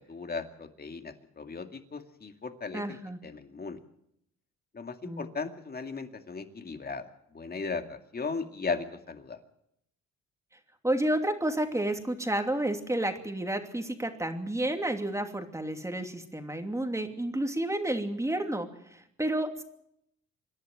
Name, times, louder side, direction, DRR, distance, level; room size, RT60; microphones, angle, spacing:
voice 1, 0.0-3.8 4.7-9.4, left 4 dB, 30° left, 7 dB, 2.2 m, -37 dB
voice 2, 2.7-3.2 5.0-5.3 10.8-19.6, right 1 dB, 10° right, 5 dB, 2.8 m, -31 dB
26.0 x 11.0 x 9.3 m, 0.77 s
cardioid pair, 90°, 30 cm